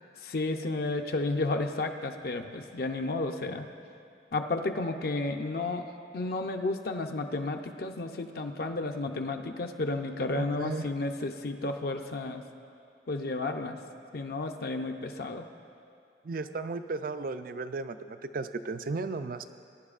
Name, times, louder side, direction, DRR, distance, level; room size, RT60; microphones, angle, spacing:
voice 1, 0.2-3.7 4.3-5.8 6.1-12.4 13.1-13.8 14.1-15.4, left 2 dB, 55° left, 4 dB, 0.6 m, -32 dB
voice 2, 10.3-10.9 16.2-19.4, right 3 dB, 50° right, 10 dB, 0.4 m, -35 dB
20.5 x 10.5 x 2.5 m, 2.5 s
head